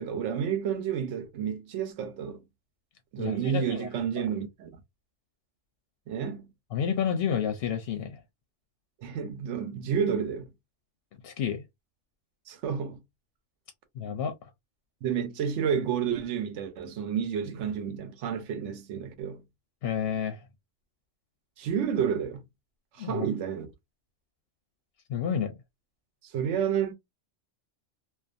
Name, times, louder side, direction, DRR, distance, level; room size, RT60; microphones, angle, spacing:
voice 1, 0.0-2.4 3.1-4.7 6.1-6.5 9.0-10.4 12.5-13.0 15.0-19.4 21.6-22.4 22.9-23.7 26.2-26.9, right 8 dB, 80° right, 0.9 m, -30 dB
voice 2, 3.2-3.9 4.2-4.3 6.7-8.2 11.2-11.6 13.9-14.5 19.8-20.4 23.0-23.3 25.1-25.6, left 8 dB, 65° left, 0.7 m, -30 dB
2.5 x 2.2 x 2.5 m
omnidirectional pair, 1.2 m